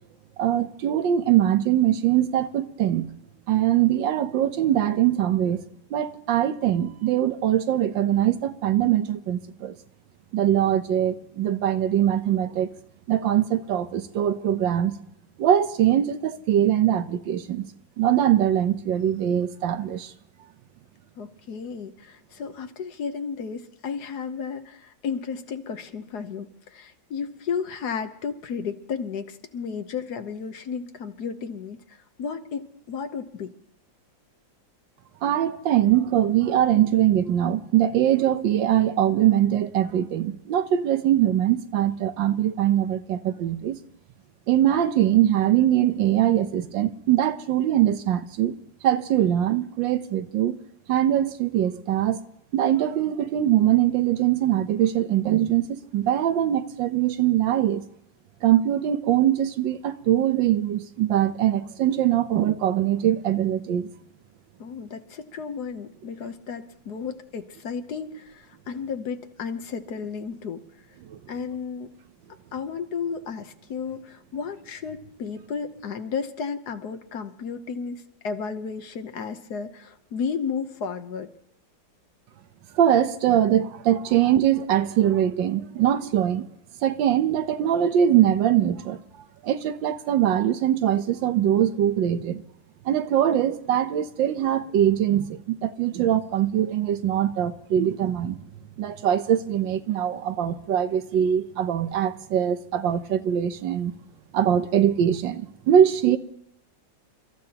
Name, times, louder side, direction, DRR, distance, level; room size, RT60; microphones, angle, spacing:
voice 1, 0.4-3.1 3.5-5.7 5.9-9.7 10.3-12.7 13.1-15.0 15.4-17.7 18.0-20.1 35.2-43.8 44.5-48.6 48.8-50.6 50.9-52.2 52.5-57.8 58.4-63.9 71.1-71.2 82.7-86.5 86.8-92.4 92.8-98.4 98.8-103.9 104.3-106.2, right 11 dB, 80° right, 1.5 m, -22 dB
voice 2, 21.2-33.5 64.6-70.6 71.3-71.9 72.5-81.3, left 6 dB, 65° left, 1.4 m, -33 dB
29.0 x 14.0 x 2.9 m
omnidirectional pair, 2.0 m